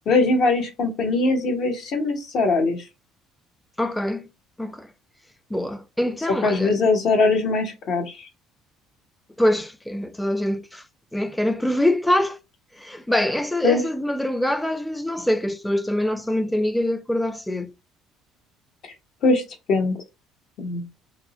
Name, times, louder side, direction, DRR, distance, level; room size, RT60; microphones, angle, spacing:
voice 1, 0.1-2.8 6.4-8.3 13.6-13.8 19.2-19.4 19.7-20.0 20.6-20.8, left 3 dB, 60° left, 0.8 m, -21 dB
voice 2, 3.8-4.3 4.6-4.9 5.5-6.7 9.4-10.8 11.1-12.4 12.8-17.7, left 1 dB, 5° left, 0.4 m, -24 dB
2.5 x 2.0 x 2.7 m
hypercardioid pair, 70°, 0 cm